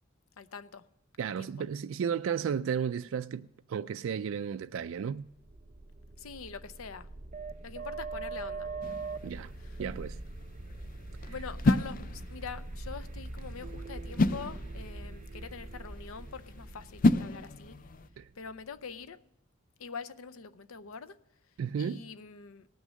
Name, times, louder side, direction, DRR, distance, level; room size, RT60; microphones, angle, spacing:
voice 1, 0.4-0.8 1.2-1.7 6.2-7.1 7.6-8.7 9.6-9.7 11.3-17.8 18.4-19.2 19.8-21.2 21.8-22.7, left 5 dB, 90° left, 0.7 m, -44 dB
voice 2, 1.2-5.2 9.2-9.5 9.8-10.2 11.2-11.3 18.2-18.3 21.6-22.0, right 7 dB, 70° right, 0.3 m, -33 dB
sound 1, 5.3-19.0, right 3 dB, 35° right, 0.7 m, -42 dB
sound 2, 8.8-18.1, left 2 dB, 40° left, 0.4 m, -33 dB
18.0 x 6.3 x 6.2 m
head